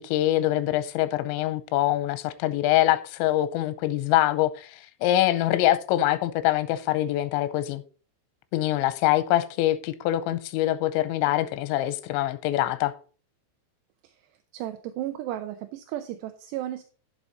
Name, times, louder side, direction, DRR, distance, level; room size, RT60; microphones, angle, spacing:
voice 1, 0.0-7.8 8.5-12.9, left 14 dB, 85° left, 2.9 m, -24 dB
voice 2, 14.5-16.8, right 13 dB, 80° right, 2.6 m, -34 dB
11.5 x 7.1 x 4.0 m
omnidirectional pair, 5.4 m